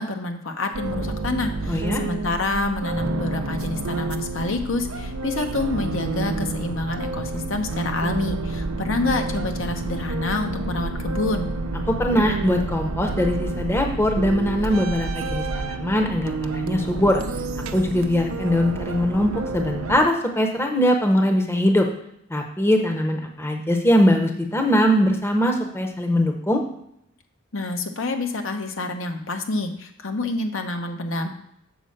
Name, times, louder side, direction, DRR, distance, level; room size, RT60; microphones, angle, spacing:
voice 1, 0.0-11.5 27.5-31.3, left 2 dB, 70° left, 5 dB, 0.9 m, -27 dB
sound 1, 0.7-20.0, right 3 dB, 85° right, 0.6 m, -29 dB
voice 2, 1.7-2.0 11.9-17.2 17.7-21.9 22.3-26.6, equal, 10° left, 3 dB, 0.8 m, -21 dB
6.9 x 4.3 x 6.5 m, 0.76 s
head